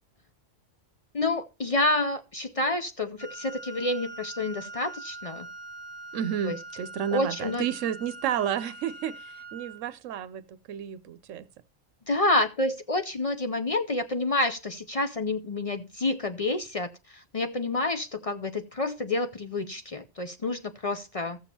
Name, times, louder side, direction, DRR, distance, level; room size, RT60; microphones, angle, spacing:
voice 1, 1.1-5.5 6.5-6.6 7.1-7.7 12.1-21.4, left 2 dB, 45° left, 0.5 m, -28 dB
Wind instrument woodwind instrument, 3.2-9.8, right 2 dB, 30° left, 3.2 m, -43 dB
voice 2, 6.1-11.4, right 9 dB, 80° right, 1.0 m, -31 dB
14.5 x 7.1 x 2.8 m
omnidirectional pair, 1.3 m